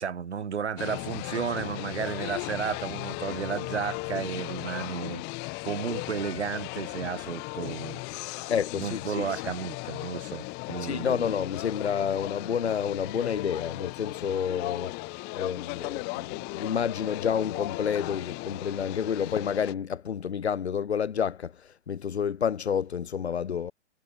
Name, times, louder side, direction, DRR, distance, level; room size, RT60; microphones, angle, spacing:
voice 1, 0.0-5.2 5.6-8.0 8.3-8.4 8.8-11.3, right 7 dB, 65° right, 6.3 m, -33 dB
sound 1, 0.8-19.7, left 28 dB, 25° left, 4.2 m, -37 dB
voice 2, 8.5-9.3 10.8-14.9 15.3-21.5 21.9-23.7, left 7 dB, 60° left, 4.8 m, -29 dB
figure-of-eight pair, 125°, 37 cm